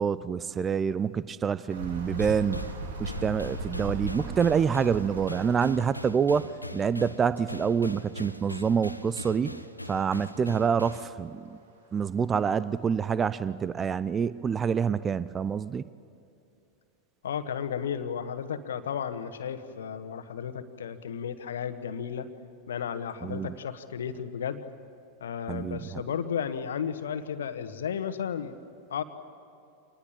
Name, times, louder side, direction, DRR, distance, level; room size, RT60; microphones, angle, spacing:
voice 1, 0.0-2.6 3.0-9.6 9.9-11.5 11.9-15.8 23.2-23.6 25.5-26.0, right 6 dB, 20° right, 17 dB, 0.6 m, -27 dB
sound 1, 1.7-6.0 8.0-8.1 8.3-8.4 9.3-9.4 11.8-11.9 12.5-12.6 13.1-13.2, right 2 dB, 60° right, 3.1 m, -38 dB
sound 2, 2.2-11.1, left 1 dB, 90° left, 1.0 m, -41 dB
voice 2, 17.2-22.3 22.7-24.6 25.2-28.6 28.9-29.0, left 8 dB, 65° left, 10 dB, 1.5 m, -33 dB
26.5 x 20.0 x 9.0 m, 2.6 s
figure-of-eight pair, 90°, 0 cm